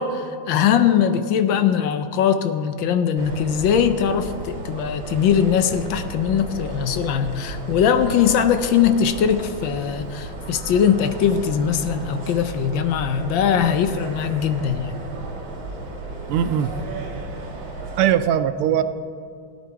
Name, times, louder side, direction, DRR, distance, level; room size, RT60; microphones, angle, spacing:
voice 1, 0.0-15.0, left 8 dB, 70° left, 10 dB, 1.3 m, -21 dB
sound 1, 3.2-18.2, right 3 dB, 70° right, 2.6 m, -34 dB
voice 2, 16.3-16.7 18.0-18.8, right 10 dB, 85° right, 12 dB, 1.5 m, -20 dB
17.0 x 9.8 x 4.6 m, 2.2 s
omnidirectional pair, 2.3 m